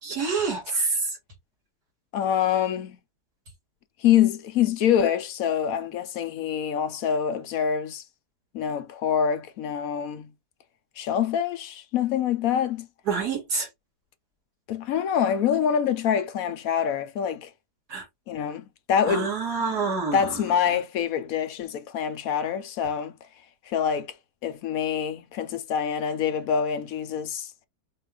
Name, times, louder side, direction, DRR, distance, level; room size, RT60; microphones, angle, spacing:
voice 1, 0.0-1.0 13.1-13.7 17.9-18.0 19.1-20.3, right 4 dB, 70° right, 2.5 m, -27 dB
voice 2, 2.1-3.0 4.0-8.0 8.5-10.3 11.0-12.9 14.7-17.5 18.3-19.3 20.1-23.1 23.7-24.1 24.4-27.5, left 8 dB, 65° left, 1.0 m, -25 dB
4.6 x 2.5 x 3.4 m
omnidirectional pair, 1.8 m